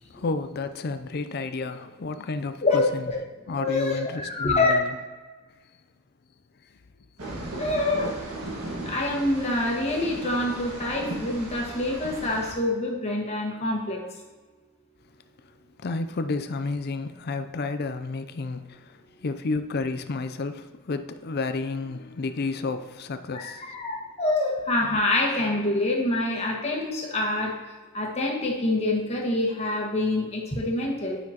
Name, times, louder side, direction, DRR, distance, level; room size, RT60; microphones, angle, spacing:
voice 1, 0.0-3.1 3.5-5.0 6.7-6.8 15.4-15.5 15.8-23.7, left 3 dB, 45° left, 0.5 m, -31 dB
voice 2, 2.6-3.1 3.5-4.7 7.6-8.1 8.8-14.0 23.3-27.5 27.9-31.2, left 2 dB, 30° left, 1.4 m, -26 dB
sound 1, 7.2-12.5, right 1 dB, 75° right, 1.7 m, -36 dB
9.9 x 5.9 x 2.9 m
head